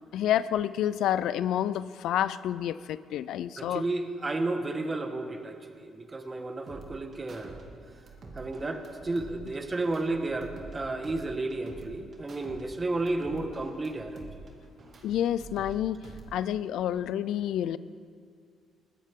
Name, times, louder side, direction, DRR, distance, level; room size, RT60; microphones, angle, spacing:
voice 1, 0.1-3.8 15.0-17.8, left 11 dB, 80° left, 16 dB, 0.4 m, -29 dB
voice 2, 3.6-7.6 8.3-14.4, right 2 dB, 25° right, 6 dB, 1.5 m, -32 dB
sound 1, 6.7-7.6 7.9-10.8 11.0-12.6 12.9-15.7 16.0-16.7, right 3 dB, 50° right, 2.3 m, -47 dB
21.5 x 14.0 x 3.7 m, 2.2 s
cardioid pair, 90°, 0 cm